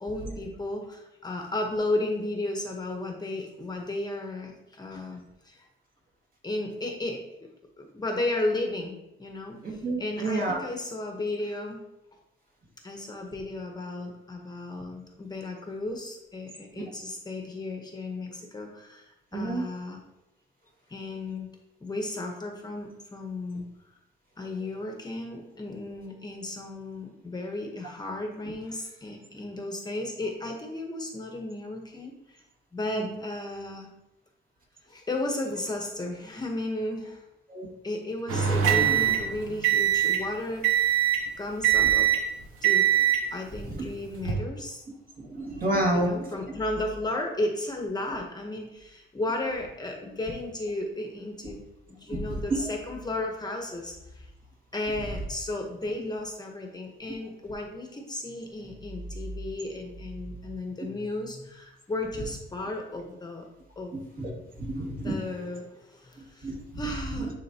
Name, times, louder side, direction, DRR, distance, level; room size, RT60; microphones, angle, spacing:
voice 1, 0.0-5.7 6.4-7.5 7.8-11.8 12.8-20.0 20.9-21.5 21.8-23.6 24.4-32.4 32.7-33.9 34.8-37.3 37.8-41.1 41.4-42.1 42.6-42.9 43.3-44.8 45.8-51.6 51.9-54.3 54.7-63.4 63.8-63.9 64.9-67.3, left 2 dB, 20° left, 2 dB, 0.9 m, -34 dB
voice 2, 9.6-10.6 19.3-19.7 33.0-33.1 37.5-37.7 43.8-43.9 45.3-46.3 52.1-52.2 52.5-52.6 63.9-64.3 64.6-65.2 66.4-66.6 67.2-67.3, right 1 dB, 45° right, -2 dB, 2.0 m, -29 dB
sound 1, 38.3-40.3 40.6-41.3 41.6-42.3 42.6-43.3 44.1-44.3, right 10 dB, 85° right, 1.1 m, -22 dB
10.0 x 3.8 x 2.8 m, 0.90 s
cardioid pair, 120°, 21 cm